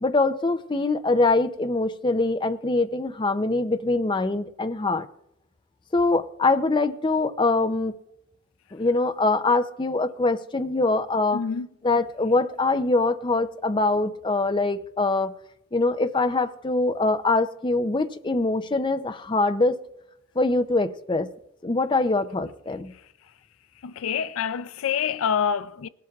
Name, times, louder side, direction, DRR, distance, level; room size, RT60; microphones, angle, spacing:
voice 1, 0.0-5.1 5.9-7.9 8.7-11.4 11.8-15.3 15.7-19.8 20.4-21.3 21.6-22.9, left 3 dB, 25° left, 0.5 m, -23 dB
voice 2, 11.3-11.7 23.8-25.9, left 7 dB, 85° left, 0.4 m, -26 dB
19.5 x 12.5 x 2.4 m
head